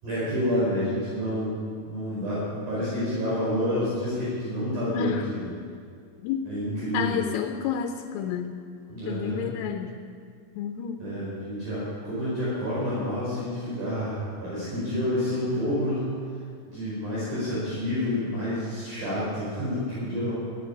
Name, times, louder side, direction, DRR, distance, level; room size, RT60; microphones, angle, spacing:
voice 1, 0.0-5.4 6.4-7.2 8.9-9.4 11.0-16.1 16.7-20.3, equal, 40° right, -10 dB, 6.2 m, -29 dB
voice 2, 4.9-5.3 6.2-6.4 6.9-8.6 9.1-10.0 10.6-11.1, left 8 dB, 90° left, 4 dB, 3.4 m, -30 dB
15.0 x 9.5 x 9.9 m, 2.2 s
omnidirectional pair, 5.6 m